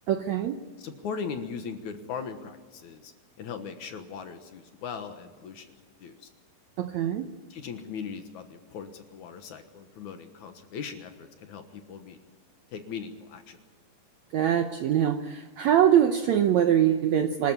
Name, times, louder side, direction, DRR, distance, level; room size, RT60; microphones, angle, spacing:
voice 1, 0.1-0.6 6.8-7.3 14.3-17.5, right 10 dB, 75° right, 7 dB, 1.7 m, -23 dB
voice 2, 0.8-3.1 3.4-6.3 7.5-12.2 12.7-13.6, left 6 dB, 65° left, 7 dB, 2.4 m, -39 dB
26.0 x 13.0 x 9.7 m, 1.5 s
omnidirectional pair, 4.2 m